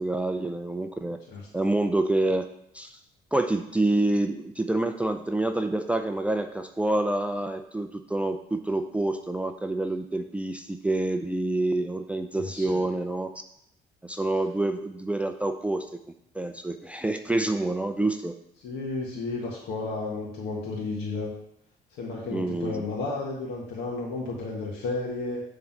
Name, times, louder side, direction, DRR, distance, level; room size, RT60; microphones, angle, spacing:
voice 1, 0.0-1.2 1.5-2.5 2.7-3.0 3.3-13.3 14.0-15.9 16.3-18.3 22.3-22.8, right 2 dB, 5° right, 6 dB, 0.4 m, -27 dB
voice 2, 12.3-12.9 18.6-21.3 22.0-25.4, left 3 dB, 85° left, -4 dB, 1.7 m, -32 dB
7.5 x 3.8 x 6.0 m, 0.74 s
cardioid pair, 110°, 17 cm